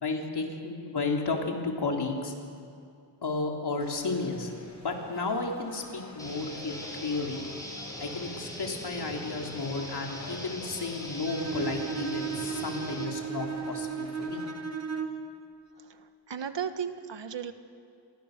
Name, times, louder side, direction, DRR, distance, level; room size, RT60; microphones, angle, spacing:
voice 1, 0.0-2.3 3.2-4.5 4.8-7.4 8.0-14.4, left 3 dB, 60° left, 1 dB, 3.7 m, -33 dB
sound 1, 3.8-14.5, left 2 dB, 40° left, 3.9 m, -48 dB
sound 2, 6.2-13.0, equal, 10° left, 5.0 m, -41 dB
Bowed string instrument, 11.2-15.3, right 6 dB, 35° right, 1.9 m, -35 dB
voice 2, 15.8-17.5, right 7 dB, 75° right, 9 dB, 1.5 m, -36 dB
29.5 x 23.5 x 6.8 m, 2.4 s
wide cardioid pair, 150°, 44 cm